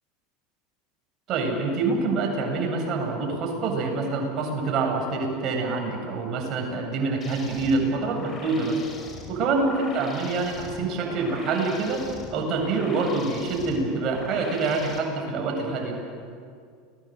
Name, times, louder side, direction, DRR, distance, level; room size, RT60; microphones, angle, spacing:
voice 1, 1.3-8.8 9.3-12.0 12.3-16.0, right 3 dB, 50° right, 1 dB, 8.0 m, -26 dB
sound 1, 7.2-15.0, left 3 dB, 30° left, 5.8 m, -41 dB
30.0 x 21.0 x 8.2 m, 2.2 s
hypercardioid pair, 85°, 0 cm